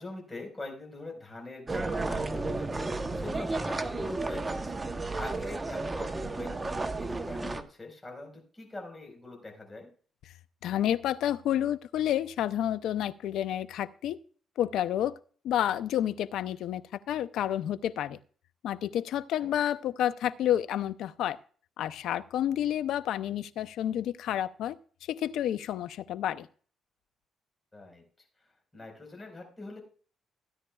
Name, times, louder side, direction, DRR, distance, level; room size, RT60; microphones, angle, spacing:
voice 1, 0.0-4.8 5.1-6.6 7.0-9.9 19.4-19.5 27.7-28.0 28.7-29.8, left 2 dB, 20° left, 1 dB, 4.4 m, -43 dB
sound 1, 1.7-7.6, right 2 dB, 20° right, 0.9 m, -33 dB
voice 2, 10.6-14.2 14.6-15.2 15.4-16.8 17.1-18.2 18.6-21.4 21.8-24.8 25.1-26.5, left 11 dB, 80° left, 15 dB, 0.5 m, -30 dB
16.0 x 9.7 x 2.3 m, 0.43 s
cardioid pair, 90°, 0 cm